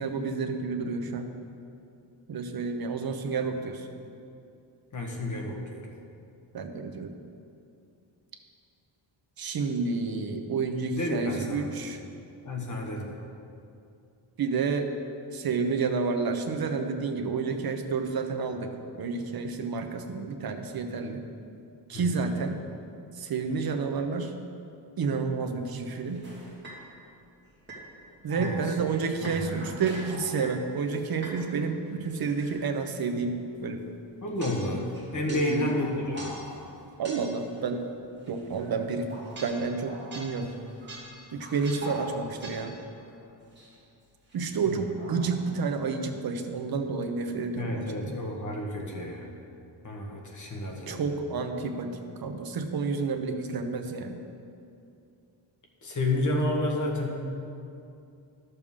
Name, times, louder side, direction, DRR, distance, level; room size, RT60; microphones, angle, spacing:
voice 1, 0.0-1.3 2.3-3.9 6.5-7.1 9.4-12.0 14.4-14.9 15.3-21.2 21.9-22.6 23.1-24.3 25.0-26.3 28.2-33.8 35.3-35.7 37.0-37.8 38.3-39.1 39.4-40.5 41.3-42.7 44.3-48.1 50.9-54.2, right 4 dB, 55° right, 6 dB, 0.8 m, -30 dB
voice 2, 4.9-5.9 10.9-11.7 12.4-13.1 21.9-22.3 28.4-28.7 29.2-29.7 34.2-36.3 44.8-44.9 47.6-49.3 49.8-51.0 55.8-57.3, left 1 dB, 40° left, 0 dB, 1.3 m, -31 dB
sound 1, 26.0-26.8 27.7-27.8 28.3-31.5 32.1-32.7 33.6-33.7 34.4-37.6 38.3-43.3 43.6-43.7 44.3-45.6, right 1 dB, 25° right, 1.8 m, -43 dB
12.5 x 6.9 x 3.6 m, 2.5 s
wide cardioid pair, 175°, 45 cm